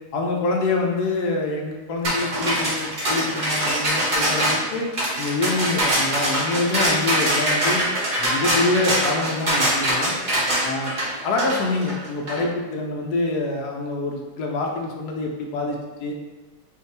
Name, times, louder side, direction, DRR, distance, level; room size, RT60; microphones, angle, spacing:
voice 1, 0.1-4.9 5.2-7.8 8.2-10.1 10.6-10.9 11.2-16.1, left 3 dB, 70° left, 1 dB, 1.0 m, -26 dB
sound 1, 2.0-12.4, right 1 dB, 45° right, 0.6 m, -23 dB
5.2 x 2.3 x 3.3 m, 1.2 s
omnidirectional pair, 2.0 m